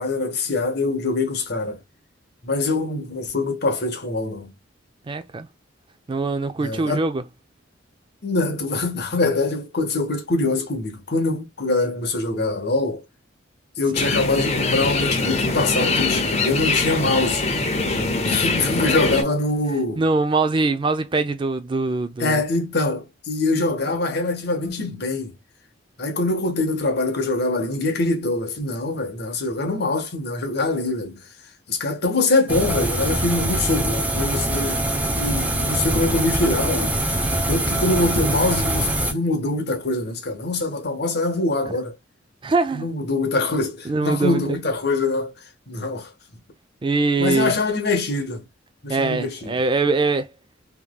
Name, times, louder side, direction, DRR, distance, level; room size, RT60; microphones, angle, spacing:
voice 1, 0.0-1.8 2.4-4.5 6.6-7.0 8.2-13.0 13.8-17.5 18.3-20.0 22.2-25.4 26.0-31.2 31.7-34.8 35.2-37.0 37.5-42.0 42.7-45.3 45.7-46.1 47.2-48.4 48.8-49.6, left 2 dB, 55° left, 1.1 m, -24 dB
voice 2, 5.1-5.5 6.1-7.2 20.0-22.4 42.4-42.9 43.9-44.6 46.8-47.5 48.9-50.3, right 3 dB, 25° right, 0.4 m, -22 dB
sound 1, 13.9-19.2, left 3 dB, 35° left, 0.7 m, -23 dB
sound 2, 32.5-39.1, right 1 dB, 10° right, 0.7 m, -23 dB
3.6 x 3.0 x 2.2 m
head